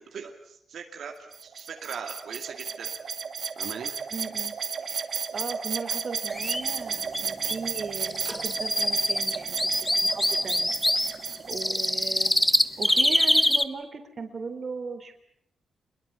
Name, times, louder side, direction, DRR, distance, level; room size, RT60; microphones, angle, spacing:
voice 1, 0.0-2.9 3.6-3.9 11.1-11.2, right 6 dB, 70° right, 3 dB, 2.4 m, -40 dB
sound 1, 1.3-12.4, right 6 dB, 55° right, 2.3 m, -33 dB
voice 2, 4.1-11.2 11.5-12.4 12.8-15.2, right 4 dB, 35° right, 7 dB, 3.8 m, -38 dB
sound 2, 6.3-6.6 7.1-7.2 7.5-7.6 8.0-11.1 11.5-13.6, left 1 dB, 10° left, 1.1 m, -24 dB
27.0 x 22.0 x 8.3 m, 0.71 s
wide cardioid pair, 150°, 0 cm